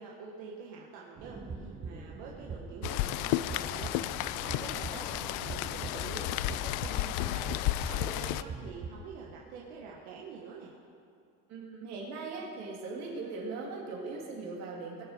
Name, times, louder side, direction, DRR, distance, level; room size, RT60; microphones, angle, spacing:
voice 1, 0.0-10.7, right 5 dB, 90° right, -3 dB, 1.6 m, -46 dB
sound 1, 1.2-8.9, right 4 dB, 25° right, 1.0 m, -43 dB
Rain, 2.8-8.4, left 16 dB, 85° left, 0.5 m, -33 dB
voice 2, 11.5-15.0, right 3 dB, 60° right, -2 dB, 3.2 m, -39 dB
20.0 x 7.3 x 5.3 m, 2.5 s
cardioid pair, 135°, 30 cm